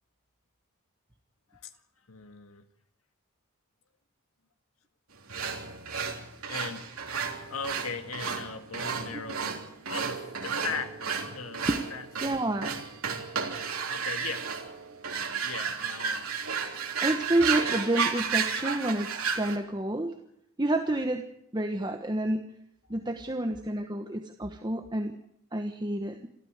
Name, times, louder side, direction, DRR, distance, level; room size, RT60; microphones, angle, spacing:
voice 1, 2.1-2.7 6.5-6.9 7.5-9.6 9.9-11.0 11.3-12.4 13.9-14.5 15.4-16.3, left 5 dB, 85° left, 1.8 m, -38 dB
sound 1, 5.3-19.6, right 6 dB, 85° right, 3.5 m, -33 dB
voice 2, 12.2-12.7 17.0-20.2 20.6-21.2 21.5-22.5 22.9-25.2 25.5-26.3, right 1 dB, 20° right, 1.2 m, -29 dB
28.0 x 13.5 x 8.1 m
head